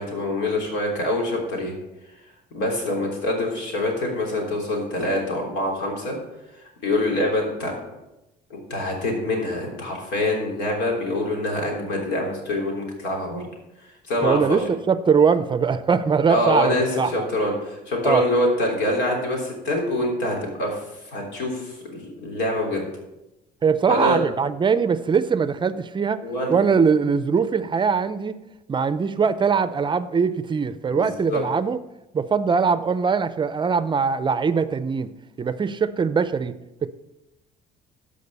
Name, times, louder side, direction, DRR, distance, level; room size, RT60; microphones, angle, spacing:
voice 1, 0.0-1.7 2.5-6.2 6.8-7.7 8.5-13.5 14.1-14.6 16.3-22.9 23.9-24.2 26.2-26.6 30.9-31.4, left 1 dB, 85° left, 0 dB, 3.4 m, -25 dB
voice 2, 14.2-17.3 18.0-18.2 23.6-26.2 26.5-28.4 28.7-31.8 32.1-35.1 35.4-36.5 36.8-37.0, right 5 dB, 30° right, 14 dB, 0.5 m, -21 dB
13.5 x 5.2 x 5.4 m, 0.96 s
cardioid pair, 110°, 17 cm